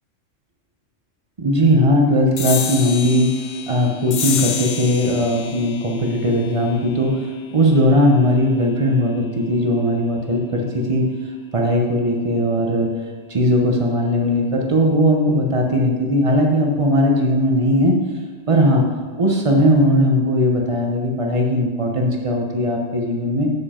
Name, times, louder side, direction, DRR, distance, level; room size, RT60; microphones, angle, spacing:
voice 1, 1.4-3.4 3.7-11.1 11.5-12.9 13.3-18.0 18.5-18.8 19.2-23.5, equal, 30° right, 1 dB, 0.8 m, -18 dB
sound 1, 2.4-9.2, left 8 dB, 60° left, 0.4 m, -30 dB
6.9 x 5.0 x 4.3 m, 1.5 s
omnidirectional pair, 1.3 m